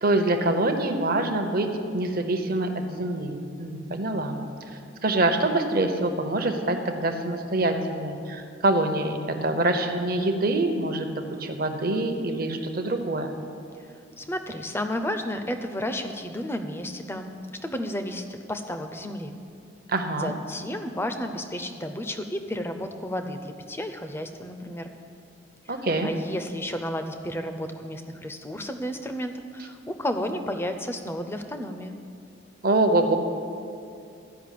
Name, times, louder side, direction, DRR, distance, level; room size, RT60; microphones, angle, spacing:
voice 1, 0.0-4.4 5.0-13.3 19.9-20.4 25.7-26.1 32.6-33.2, right 2 dB, 45° right, 5 dB, 0.9 m, -25 dB
voice 2, 14.2-17.3 17.6-19.3 20.1-24.9 25.7-25.8 26.0-31.9, left 1 dB, 10° left, 7 dB, 0.6 m, -32 dB
13.5 x 5.5 x 8.4 m, 2.6 s
head